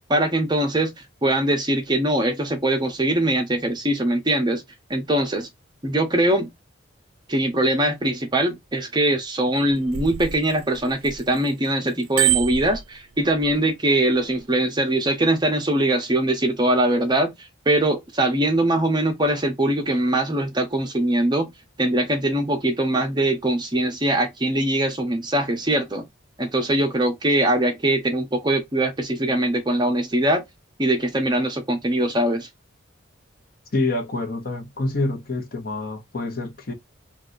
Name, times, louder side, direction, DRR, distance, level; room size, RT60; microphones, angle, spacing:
voice 1, 0.1-0.9 1.2-4.6 4.9-5.5 5.8-6.5 7.3-17.3 17.7-21.5 21.8-26.0 26.4-30.4 30.8-32.5, right 1 dB, 20° right, 0.6 m, -22 dB
Bicycle bell, 9.6-11.5 11.9-13.5 14.2-14.4, right 14 dB, 85° right, 0.4 m, -26 dB
voice 2, 33.7-36.7, left 2 dB, 45° left, 0.8 m, -27 dB
2.7 x 2.3 x 3.7 m
head